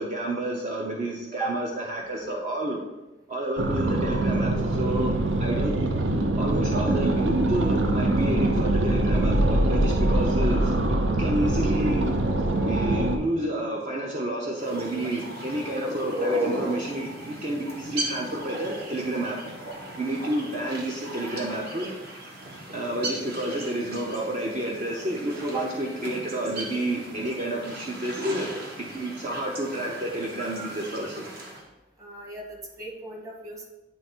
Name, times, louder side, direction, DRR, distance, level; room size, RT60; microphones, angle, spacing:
voice 1, 0.0-2.8 3.3-5.1 5.4-5.8 6.4-12.1 12.6-19.4 20.0-21.9 22.7-28.5 28.8-31.3, right 1 dB, 40° right, -1 dB, 0.7 m, -30 dB
sound 1, 3.6-13.2, right 1 dB, 80° right, 0.7 m, -23 dB
sound 2, 14.6-31.6, right 1 dB, 60° right, 1.4 m, -36 dB
voice 2, 32.0-33.7, right 3 dB, 20° right, -1 dB, 1.2 m, -36 dB
9.3 x 3.3 x 4.3 m, 1.0 s
head